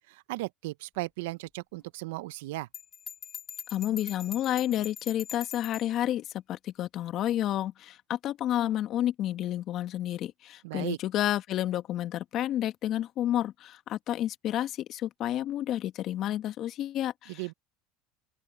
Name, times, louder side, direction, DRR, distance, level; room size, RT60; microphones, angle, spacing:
voice 1, 0.1-2.7 10.6-11.0 17.3-17.5, right 20 dB, 80° right, 0.8 m, -36 dB
Bell, 2.7-5.9, left 7 dB, 35° left, 3.3 m, -42 dB
voice 2, 3.7-17.5, left 12 dB, 50° left, 1.7 m, -30 dB
open air
supercardioid pair, 100°, 0 cm